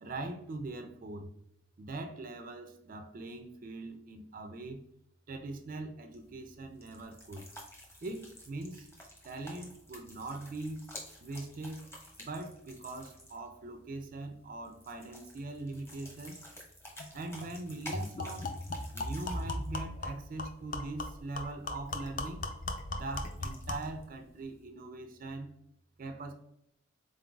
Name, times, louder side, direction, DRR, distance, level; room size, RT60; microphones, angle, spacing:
voice 1, 0.0-1.3 1.8-4.8 5.3-7.5 8.0-8.9 9.2-10.9 11.2-11.9 12.2-16.4 17.1-18.5 18.9-22.4 22.9-25.5 26.0-26.3, right 2 dB, 45° right, 6 dB, 0.4 m, -41 dB
sound 1, 6.1-24.6, equal, 15° left, 0.9 m, -52 dB
sound 2, 17.0-17.1 17.4-17.5 17.9-23.9, left 2 dB, 40° left, 0.5 m, -38 dB
4.0 x 3.8 x 2.3 m, 0.78 s
head